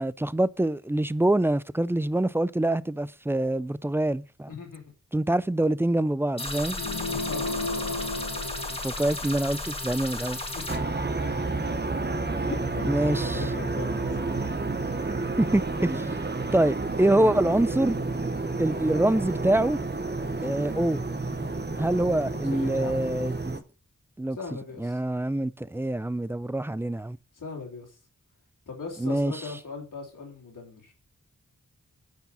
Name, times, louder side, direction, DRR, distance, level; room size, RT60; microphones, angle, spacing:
voice 1, 0.0-4.5 5.1-6.8 8.8-10.4 12.8-13.4 15.4-16.1 16.5-18.0 18.6-19.8 20.4-21.0 21.8-23.6 24.2-24.4 24.8-27.2 29.0-29.3, right 1 dB, 10° right, 0.4 m, -25 dB
voice 2, 4.5-4.9 7.1-7.6 10.5-10.7 11.2-11.3 12.4-14.3 22.0-22.2 22.5-23.0 24.4-25.0 27.3-28.0 28.7-30.9, left 4 dB, 85° left, 3.1 m, -39 dB
sound 1, 6.4-10.8, left 2 dB, 20° left, 1.7 m, -34 dB
sound 2, 6.7-9.4, left 2 dB, 55° left, 1.1 m, -33 dB
sound 3, 10.7-23.6, right 3 dB, 35° right, 1.0 m, -30 dB
9.3 x 4.7 x 5.5 m
wide cardioid pair, 65°, 31 cm